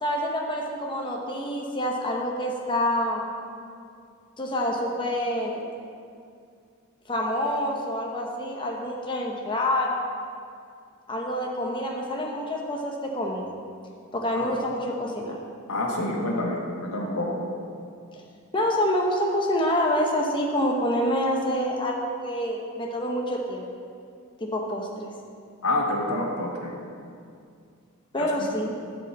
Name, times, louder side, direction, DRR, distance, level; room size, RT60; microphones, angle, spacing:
voice 1, 0.0-3.3 4.4-5.6 7.1-10.0 11.1-13.5 14.1-15.4 18.5-23.6 24.4-25.1 28.1-28.7, left 1 dB, 20° left, -1 dB, 0.8 m, -27 dB
voice 2, 15.7-17.4 25.6-26.7 28.2-28.3, left 1 dB, 85° left, -1 dB, 1.7 m, -27 dB
11.0 x 5.1 x 7.2 m, 2.3 s
head